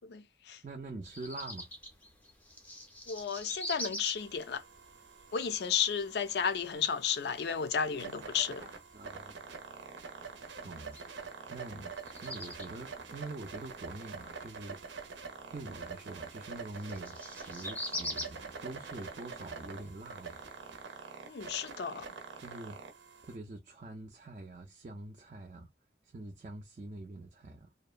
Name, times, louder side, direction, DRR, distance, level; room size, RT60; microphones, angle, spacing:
voice 1, 0.1-0.6 3.1-4.6 5.3-8.8 21.3-22.1, left 7 dB, 65° left, 0.4 m, -33 dB
voice 2, 0.6-1.7 8.9-9.3 10.6-11.0 11.5-11.9 12.2-15.1 15.5-20.4 22.4-22.8 23.2-25.7 26.0-27.7, right 2 dB, 40° right, 0.4 m, -45 dB
sound 1, 1.0-20.8, left 1 dB, 10° left, 0.5 m, -46 dB
sound 2, 4.2-23.4, right 5 dB, 90° right, 0.7 m, -46 dB
2.7 x 2.1 x 2.4 m
head